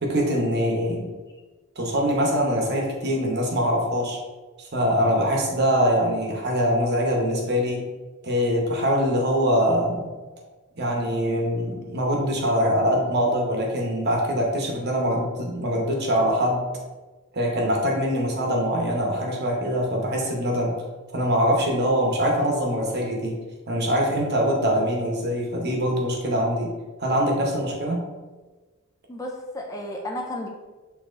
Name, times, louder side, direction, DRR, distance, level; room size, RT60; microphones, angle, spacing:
voice 1, 0.0-1.1 1.8-4.2 4.6-7.9 8.2-10.1 10.8-16.7 17.3-20.8 21.1-23.4 23.7-26.7 27.0-28.1, equal, 50° right, 0 dB, 0.9 m, -23 dB
voice 2, 29.1-30.5, left 1 dB, 15° left, 1 dB, 0.3 m, -32 dB
6.3 x 2.8 x 2.5 m, 1.3 s
head